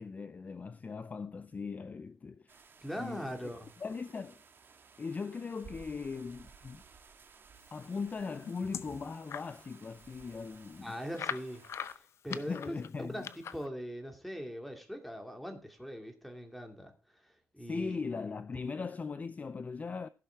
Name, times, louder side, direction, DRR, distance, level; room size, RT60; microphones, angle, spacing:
voice 1, 0.0-2.6 2.9-3.5 3.8-4.4 5.0-6.8 7.7-11.0 12.3-13.3 17.6-20.1, left 5 dB, 30° left, 0.4 m, -39 dB
sound 1, 2.5-12.0, right 5 dB, 45° right, 1.6 m, -57 dB
voice 2, 2.8-3.7 10.8-11.7 12.2-12.7 13.1-16.9 17.2-18.0, equal, ahead, 2.5 m, -41 dB
sound 2, 8.0-9.5 10.0-10.1 10.3-10.4 11.1-13.7, left 8 dB, 65° left, 0.7 m, -42 dB
15.5 x 6.4 x 4.5 m
cardioid pair, 115°, 5 cm